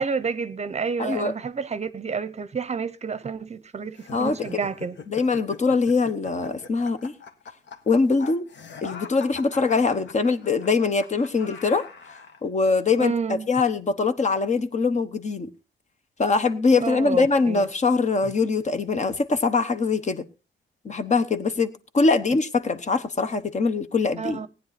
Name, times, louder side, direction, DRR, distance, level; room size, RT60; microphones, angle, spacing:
voice 1, 0.0-5.0 13.0-13.5 16.8-17.7 22.3-22.4 24.2-24.5, right 5 dB, 35° right, 0.8 m, -29 dB
voice 2, 1.0-1.3 4.1-4.6 5.1-7.1 7.9-8.5 8.8-11.8 12.4-15.5 16.2-20.2 20.8-24.4, left 4 dB, 35° left, 1.1 m, -23 dB
sound 1, 3.9-12.4, left 5 dB, 60° left, 1.7 m, -42 dB
18.5 x 9.8 x 4.2 m
wide cardioid pair, 165°, 21 cm